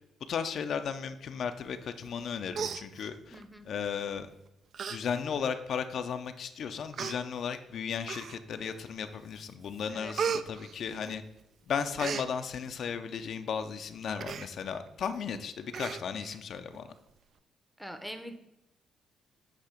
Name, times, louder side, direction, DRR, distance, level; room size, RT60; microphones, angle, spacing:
voice 1, 0.3-3.4 3.7-4.3 4.9-11.2 11.7-16.9, left 7 dB, 60° left, 8 dB, 0.4 m, -35 dB
Human voice, 2.1-2.2 2.5-3.4 4.2-4.3 4.7-5.0 5.4-5.5 6.3-6.4 6.9-7.2 8.0-8.6 9.1-9.4 9.7-11.4 11.7-12.3 14.2-14.5 14.9-15.0 15.2-15.4 15.7-16.4 16.7-16.8, right 6 dB, 60° right, 0.3 m, -36 dB
voice 2, 3.3-3.7 9.9-10.2 17.8-18.3, equal, ahead, 7 dB, 0.7 m, -43 dB
8.2 x 2.9 x 5.0 m, 0.89 s
cardioid pair, 90°, 0 cm